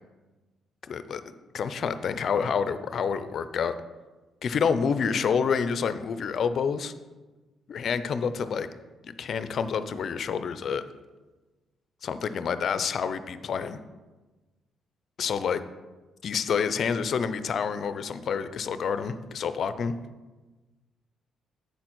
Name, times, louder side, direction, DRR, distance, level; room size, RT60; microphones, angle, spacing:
voice 1, 0.9-1.2 1.5-3.8 4.4-6.9 7.7-8.7 9.0-10.8 12.0-13.8 15.2-15.6 16.2-19.9, left 6 dB, 60° left, 12 dB, 0.5 m, -28 dB
8.1 x 4.3 x 6.0 m, 1.2 s
cardioid pair, 90°, 0 cm